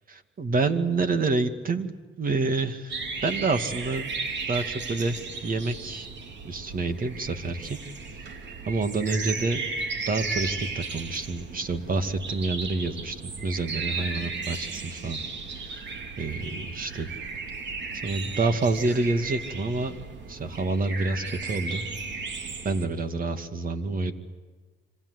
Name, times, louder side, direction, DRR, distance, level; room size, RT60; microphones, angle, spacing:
voice 1, 0.1-4.1 4.5-6.1 6.4-7.8 8.7-9.7 10.1-15.2 15.5-15.9 16.2-17.1 18.0-19.9 20.3-21.9 22.6-24.1, right 3 dB, 45° right, 8 dB, 2.3 m, -28 dB
sound 1, 2.9-22.9, right 4 dB, 65° right, 3.1 m, -35 dB
27.0 x 25.5 x 8.2 m, 1.4 s
cardioid pair, 90°, 20 cm